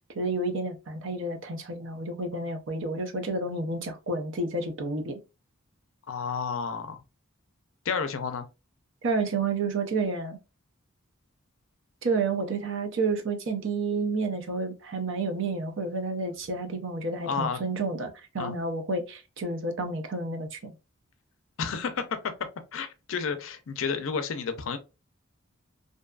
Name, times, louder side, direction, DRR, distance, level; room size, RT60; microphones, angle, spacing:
voice 1, 0.1-5.2 9.0-10.4 12.0-20.7, right 3 dB, 60° right, 0.5 m, -30 dB
voice 2, 6.1-7.0 7.8-8.5 17.2-17.6 18.4-18.5 21.6-22.3 22.7-24.8, left 5 dB, 70° left, 0.4 m, -31 dB
2.6 x 2.3 x 2.2 m
head